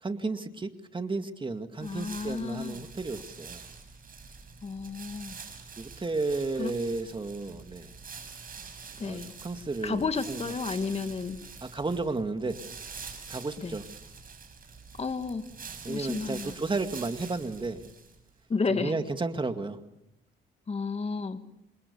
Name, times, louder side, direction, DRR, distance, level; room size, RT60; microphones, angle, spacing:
voice 1, 0.0-3.6 5.8-7.9 9.0-10.4 11.6-12.6 13.3-13.8 15.8-17.8 18.7-19.8, right 3 dB, 25° right, 7 dB, 2.2 m, -33 dB
voice 2, 1.8-2.8 4.6-5.4 6.6-6.7 9.0-9.3 9.8-11.4 13.6-13.8 15.0-15.5 15.9-16.5 18.5-18.9 20.7-21.4, left 4 dB, 30° left, 8 dB, 1.9 m, -32 dB
sound 1, 1.8-18.3, right 5 dB, 45° right, 7.5 m, -46 dB
28.5 x 26.5 x 7.0 m, 0.89 s
cardioid pair, 90°, 20 cm